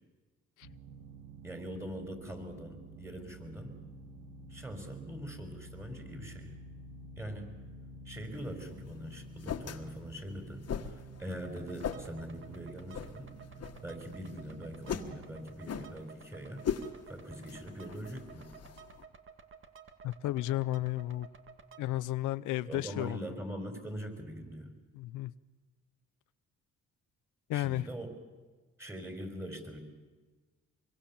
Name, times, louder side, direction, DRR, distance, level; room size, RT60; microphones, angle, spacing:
sound 1, 0.6-15.3, right 2 dB, 70° right, 3.4 m, -50 dB
voice 1, 1.4-3.8 4.5-6.6 7.2-7.5 8.0-13.4 13.8-16.7 17.1-18.5 22.7-24.7 27.5-28.1 28.8-29.8, equal, 10° right, 6 dB, 4.7 m, -43 dB
sound 2, 8.3-19.0, left 7 dB, 55° left, 1.7 m, -42 dB
sound 3, 11.3-22.0, right 6 dB, 40° right, 2.0 m, -54 dB
voice 2, 20.0-21.3 21.8-23.2 24.9-25.3 27.5-27.9, left 15 dB, 90° left, 15 dB, 0.7 m, -33 dB
24.5 x 23.0 x 7.2 m, 1.3 s
cardioid pair, 90°, 30 cm